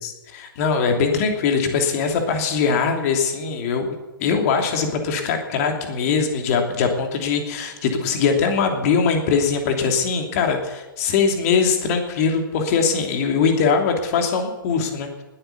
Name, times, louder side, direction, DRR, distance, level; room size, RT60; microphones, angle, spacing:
voice 1, 0.0-15.1, left 5 dB, 40° left, 4 dB, 3.0 m, -21 dB
19.5 x 8.8 x 6.9 m, 1.1 s
figure-of-eight pair, 120°, 12 cm